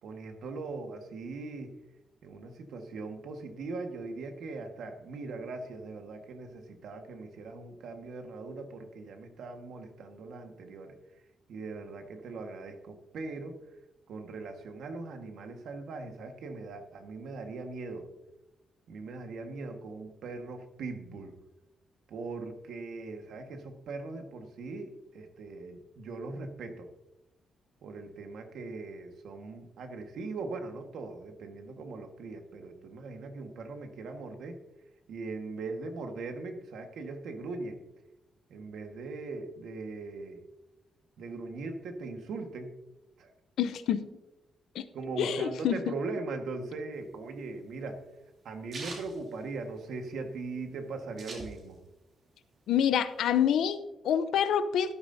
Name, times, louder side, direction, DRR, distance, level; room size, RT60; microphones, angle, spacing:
voice 1, 0.0-1.8 2.2-11.2 11.5-13.6 14.1-18.1 18.9-21.3 22.1-26.9 27.8-34.6 35.1-37.8 38.5-40.4 41.2-42.7 43.2-43.3 44.9-48.0 48.4-51.8, right 3 dB, 70° right, 5 dB, 1.6 m, -40 dB
voice 2, 43.6-44.1 44.7-44.9 45.2-45.8 52.7-54.9, left 9 dB, 90° left, 12 dB, 0.7 m, -27 dB
sound 1, 47.0-50.1 50.5-50.6 50.7-52.0 52.4-53.5, right 3 dB, 45° right, 2.9 m, -45 dB
13.5 x 12.5 x 2.8 m, 0.95 s
wide cardioid pair, 180°, 0 cm